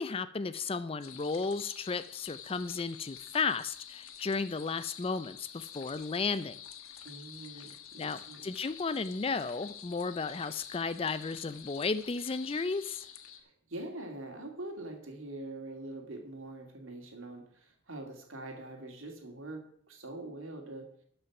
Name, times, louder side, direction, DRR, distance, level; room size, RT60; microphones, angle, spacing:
voice 1, 0.0-6.6 8.0-13.1, left 4 dB, 25° left, 14 dB, 0.4 m, -34 dB
sound 1, 1.0-13.4, left 9 dB, 90° left, 1.2 m, -49 dB
voice 2, 7.0-8.4 13.3-20.9, right 2 dB, 75° right, 2 dB, 2.6 m, -44 dB
12.0 x 5.6 x 5.9 m, 0.63 s
head